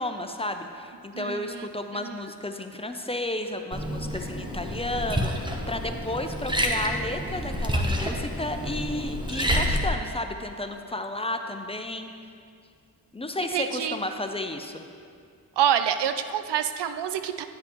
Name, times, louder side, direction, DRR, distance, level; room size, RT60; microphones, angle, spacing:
voice 1, 0.0-12.1 13.1-14.9, left 1 dB, 15° left, 6 dB, 0.5 m, -32 dB
voice 2, 1.1-1.7 1.9-2.2 13.5-14.0 15.6-17.4, right 9 dB, 90° right, 9 dB, 0.5 m, -27 dB
Liquid, 3.7-9.8, equal, 10° right, 0.8 m, -28 dB
10.0 x 7.4 x 3.0 m, 2.3 s
cardioid pair, 70°, 40 cm